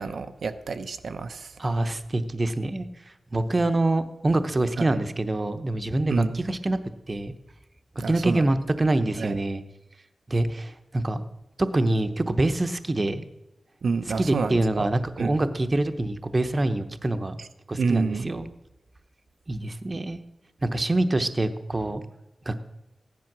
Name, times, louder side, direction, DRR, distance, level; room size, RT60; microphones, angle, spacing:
voice 1, 0.0-1.5 4.8-5.0 6.1-6.4 8.0-8.5 9.2-9.4 13.8-14.9 15.2-15.4 17.8-18.3, right 4 dB, 90° right, 9 dB, 0.8 m, -28 dB
voice 2, 1.6-2.9 3.3-6.8 7.1-7.3 8.0-9.6 10.3-11.2 11.6-13.3 14.2-17.4 17.7-18.5 19.5-20.2 20.6-22.0 22.5-22.6, right 2 dB, 30° right, 9 dB, 0.8 m, -25 dB
15.5 x 10.5 x 6.1 m, 0.95 s
wide cardioid pair, 140°, 0 cm